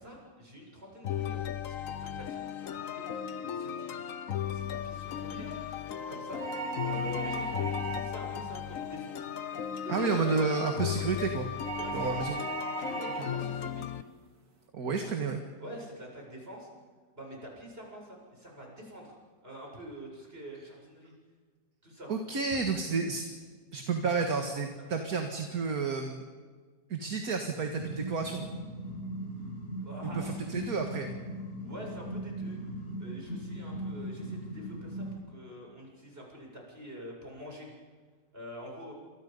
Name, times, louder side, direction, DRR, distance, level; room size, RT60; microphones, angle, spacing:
voice 1, 0.0-4.1 4.4-5.5 5.9-6.4 6.8-10.4 11.8-12.2 12.8-13.9 15.6-16.7 17.1-19.1 19.4-21.1 21.8-22.1 24.8-24.9 29.8-30.9 31.6-32.6 33.0-37.7 38.3-38.9, equal, 35° right, -1 dB, 8.0 m, -46 dB
sound 1, 1.0-14.0, left 9 dB, 55° left, 1.1 m, -36 dB
sound 2, 6.4-8.3 11.6-13.4, right 4 dB, 80° right, 3.4 m, -37 dB
voice 2, 9.9-11.5 11.9-12.4 14.7-15.4 22.1-23.2 23.7-26.2 26.9-28.4 30.0-31.1, right 4 dB, 60° right, 4 dB, 2.2 m, -31 dB
sound 3, 27.8-35.1, right 1 dB, 40° left, 8.0 m, -39 dB
29.0 x 27.0 x 5.5 m, 1.5 s
omnidirectional pair, 1.8 m